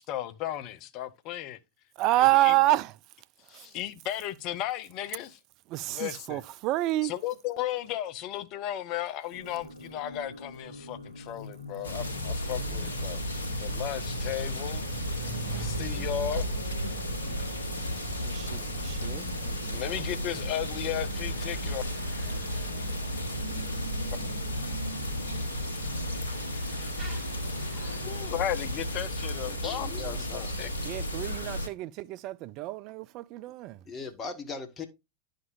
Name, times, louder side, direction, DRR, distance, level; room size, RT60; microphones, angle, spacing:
voice 1, 0.0-1.6 2.4-2.5 3.5-5.4 5.9-6.4 7.0-14.9 15.5-16.5 16.9-17.1 17.4-17.5 19.7-21.8 28.0-30.7, left 12 dB, 40° left, 0.6 m, -35 dB
voice 2, 2.0-2.9 3.5-3.7 5.7-7.1 17.9-20.0 30.8-33.8, right 17 dB, 40° right, 0.3 m, -28 dB
sound 1, 9.3-28.6, right 1 dB, 90° right, 1.6 m, -44 dB
sound 2, 11.8-31.7, equal, 75° left, 1.2 m, -33 dB
Bicycle / Mechanisms, 13.7-31.2, right 2 dB, 25° right, 3.1 m, -47 dB
voice 3, 29.4-30.6 33.8-34.9, left 4 dB, 25° left, 1.2 m, -39 dB
11.0 x 5.2 x 2.5 m
figure-of-eight pair, 95°, 0 cm